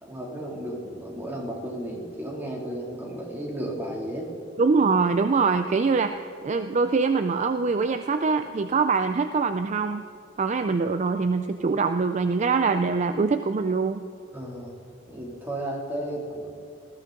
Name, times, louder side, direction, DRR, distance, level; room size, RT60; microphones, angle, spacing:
voice 1, 0.0-4.3 14.3-14.7 15.1-16.5, right 1 dB, 10° right, -3 dB, 2.6 m, -33 dB
voice 2, 4.6-10.1 10.4-14.0, right 4 dB, 40° right, 9 dB, 0.4 m, -23 dB
19.5 x 14.5 x 3.8 m, 2.3 s
head